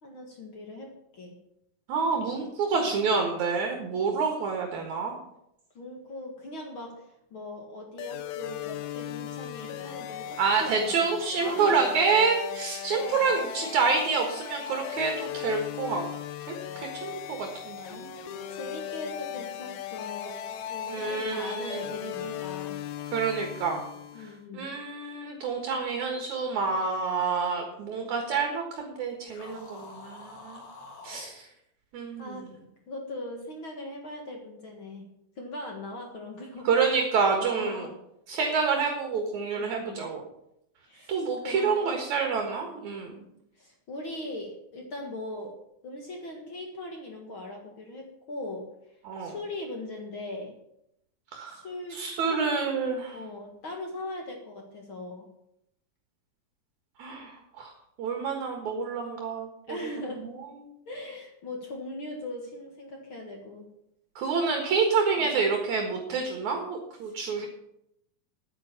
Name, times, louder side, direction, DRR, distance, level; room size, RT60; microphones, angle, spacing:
voice 1, 0.0-1.4 2.8-3.0 5.7-11.1 11.4-11.8 12.9-13.3 18.1-22.8 24.1-24.8 32.2-32.5 32.9-35.1 35.4-36.7 37.4-37.9 38.4-38.6 39.5-40.0 40.9-41.9 43.6-45.5 45.8-48.7 49.2-50.5 51.5-52.0 52.3-52.6 53.1-55.3 59.7-60.3 60.9-63.7 65.2-65.4 67.1-67.5, left 1 dB, 45° left, 1 dB, 2.0 m, -40 dB
voice 2, 1.9-5.2 10.4-16.0 16.5-18.1 20.9-22.3 23.1-23.8 24.2-30.6 31.0-31.5 31.9-32.4 36.6-37.9 38.3-40.3 41.1-43.1 49.0-49.3 51.3-51.6 51.9-53.2 57.0-57.7 58.0-59.8 60.2-60.4 64.2-67.5, right 5 dB, 60° right, 3 dB, 2.8 m, -28 dB
sound 1, 8.0-24.4, left 11 dB, 70° left, 1.9 m, -37 dB
sound 2, 29.2-31.3, left 3 dB, 90° left, 4.1 m, -46 dB
9.8 x 9.6 x 7.0 m, 0.79 s
omnidirectional pair, 4.0 m